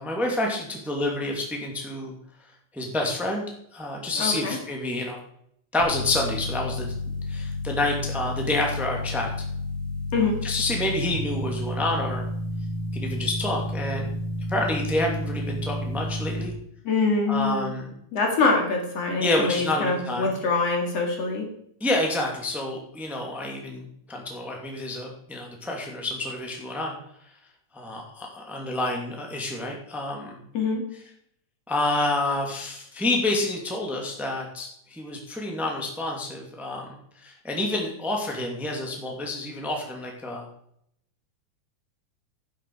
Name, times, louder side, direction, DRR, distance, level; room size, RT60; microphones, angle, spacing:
voice 1, 0.0-2.1 2.7-3.4 3.7-5.2 5.7-6.9 7.3-9.3 10.4-12.2 12.9-14.1 14.5-16.5 17.3-17.9 19.2-20.4 21.8-26.9 27.7-30.4 31.7-36.9 37.2-40.5, left 2 dB, ahead, 0 dB, 2.1 m, -28 dB
voice 2, 4.2-4.6 10.1-10.4 16.8-17.8 18.1-21.5 30.5-30.8, left 3 dB, 55° left, 2 dB, 3.3 m, -24 dB
sound 1, 5.8-16.5, left 1 dB, 70° right, 3.3 m, -31 dB
11.5 x 10.5 x 4.8 m, 0.70 s
omnidirectional pair, 3.4 m